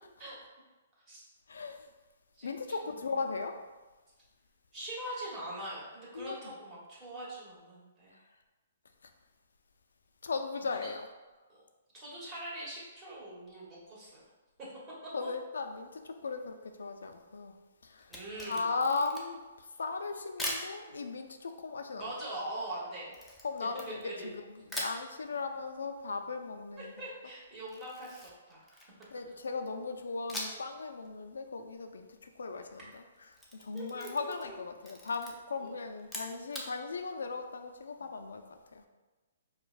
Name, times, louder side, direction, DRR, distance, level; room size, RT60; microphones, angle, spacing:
voice 1, 1.5-1.9 2.4-3.6 6.1-6.5 10.2-11.1 15.1-17.5 17.8-18.1 18.5-22.0 23.4-26.9 29.1-33.0 33.5-38.8, left 4 dB, 85° left, 6 dB, 0.3 m, -37 dB
voice 2, 2.8-3.1 4.7-8.1 10.7-10.9 11.5-11.6 11.9-14.2 14.6-14.7 18.1-18.7 22.0-23.1 24.0-24.3 26.8-28.8 33.7-34.6 35.6-35.7, right 1 dB, 25° right, -7 dB, 1.3 m, -43 dB
Camera, 18.0-19.5 20.4-20.7 23.1-24.3 24.7-25.0 27.7-29.2 30.3-30.7 31.1-31.2 33.1-34.5 34.8-35.3 36.0-36.7, left 1 dB, ahead, 0.5 m, -41 dB
4.6 x 2.2 x 2.4 m, 1.2 s
hypercardioid pair, 145°, 0 cm